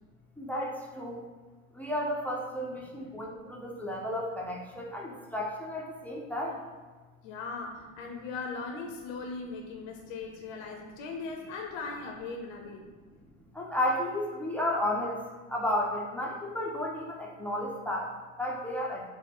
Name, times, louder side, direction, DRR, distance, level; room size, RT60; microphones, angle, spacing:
voice 1, 0.4-1.2 1.8-6.6 13.6-15.2 15.5-18.1 18.4-19.0, left 1 dB, 5° left, -2 dB, 0.4 m, -32 dB
voice 2, 7.2-12.9, left 4 dB, 65° left, 1 dB, 0.6 m, -39 dB
4.4 x 2.0 x 3.4 m, 1.3 s
hypercardioid pair, 75°, 41 cm